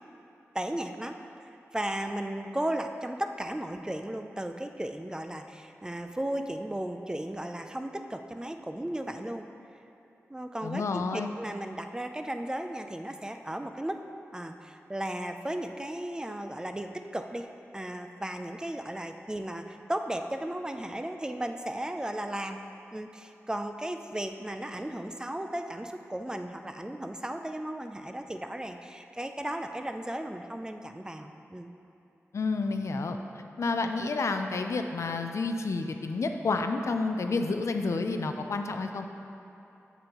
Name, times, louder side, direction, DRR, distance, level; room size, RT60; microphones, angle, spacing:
voice 1, 0.5-9.5 10.3-14.0 14.3-22.6 22.9-31.7, right 1 dB, 15° right, 6 dB, 0.4 m, -35 dB
voice 2, 10.6-11.3 32.3-33.2 33.6-39.1, left 3 dB, 70° left, 6 dB, 0.4 m, -30 dB
7.5 x 7.0 x 3.0 m, 2.9 s
wide cardioid pair, 65°, 5 cm